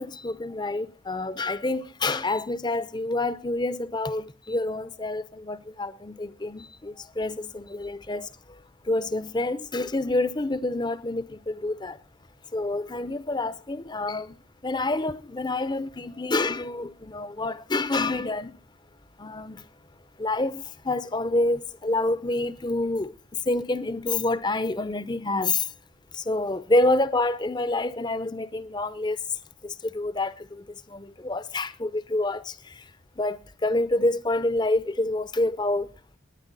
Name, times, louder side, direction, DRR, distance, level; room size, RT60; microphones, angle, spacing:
voice 1, 0.0-8.6 8.9-12.0 12.5-14.3 14.6-18.6 19.2-19.6 20.2-23.1 23.5-25.7 26.1-29.2 29.6-32.8 33.2-35.9, left 2 dB, 20° left, 0.6 m, -27 dB
19.0 x 9.9 x 3.9 m
head